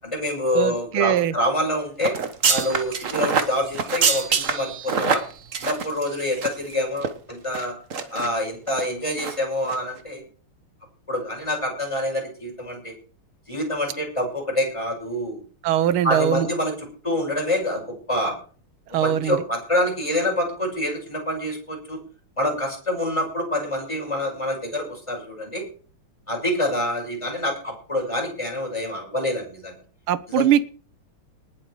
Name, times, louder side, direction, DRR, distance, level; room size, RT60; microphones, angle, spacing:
voice 1, 0.0-2.2 2.5-5.2 5.6-7.7 8.1-10.2 11.1-12.9 13.5-15.4 16.0-16.7 17.0-18.3 18.9-22.0 22.4-25.6 26.3-29.7 30.3-30.5, left 1 dB, 15° left, 0 dB, 6.0 m, -26 dB
voice 2, 0.5-1.3 15.6-16.5 18.9-19.4 30.1-30.6, right 10 dB, 75° right, 17 dB, 1.7 m, -21 dB
sound 1, 2.0-6.7 7.0-7.1 7.5-8.3 8.7-8.9 9.2-9.4 9.6-9.8, right 5 dB, 40° right, 1.4 m, -25 dB
19.5 x 8.1 x 4.8 m, 0.41 s
omnidirectional pair, 2.4 m